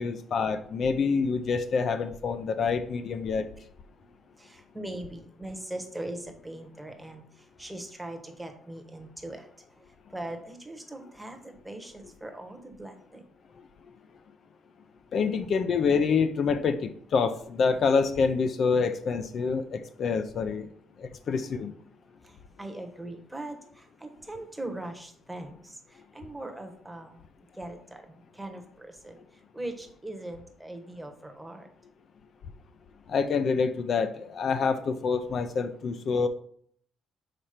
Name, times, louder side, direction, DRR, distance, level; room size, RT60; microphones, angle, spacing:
voice 1, 0.0-3.5 15.1-20.7 21.0-21.7 33.1-36.3, left 5 dB, 45° left, 9 dB, 0.4 m, -27 dB
voice 2, 4.4-9.5 9.8-9.9 10.1-13.2 22.2-27.2 27.5-29.2 29.5-31.7, right 1 dB, 5° right, 4 dB, 0.9 m, -40 dB
5.0 x 4.3 x 5.7 m, 0.62 s
cardioid pair, 145°, 0 cm